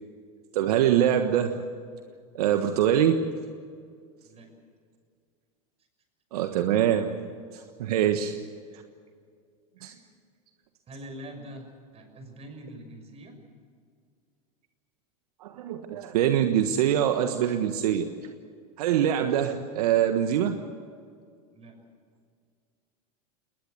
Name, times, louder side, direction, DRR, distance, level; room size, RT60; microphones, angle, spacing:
voice 1, 0.5-1.6 2.3-3.4 6.3-8.4 8.7-8.8 9.8-9.9 15.4-18.1 18.8-20.6, right 10 dB, 70° right, 7 dB, 1.4 m, -24 dB
voice 2, 9.8-10.1 10.9-13.3 21.5-21.7, right 1 dB, 30° right, 5 dB, 6.2 m, -44 dB
21.0 x 20.0 x 8.0 m, 2.2 s
hypercardioid pair, 100°, 20 cm